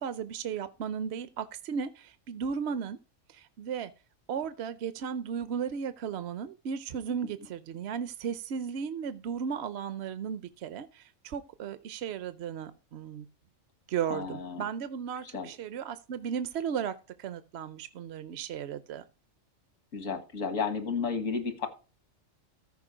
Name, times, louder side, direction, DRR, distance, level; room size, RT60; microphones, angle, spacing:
voice 1, 0.0-3.0 3.3-3.9 4.3-13.3 13.9-19.0, right 7 dB, 60° right, 12 dB, 0.8 m, -35 dB
voice 2, 14.1-14.7 15.2-15.5 19.9-21.7, left 5 dB, 80° left, 7 dB, 2.0 m, -32 dB
14.5 x 5.1 x 5.0 m, 0.33 s
omnidirectional pair, 1.3 m